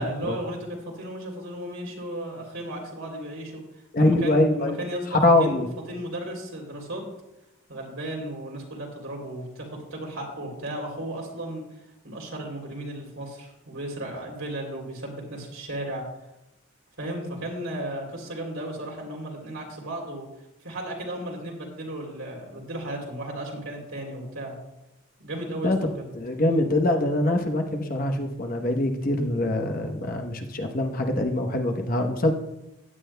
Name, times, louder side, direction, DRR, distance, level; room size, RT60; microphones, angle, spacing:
voice 1, 0.0-3.6 4.0-5.6 5.9-7.0 7.7-11.6 12.0-16.0 17.0-20.3 20.6-24.5 25.2-26.1, right 1 dB, 85° right, -1 dB, 3.0 m, -35 dB
voice 2, 3.9-4.8 5.1-5.7 25.6-25.8 26.1-32.3, left 1 dB, 45° left, 4 dB, 0.9 m, -23 dB
15.5 x 9.8 x 2.2 m, 0.93 s
head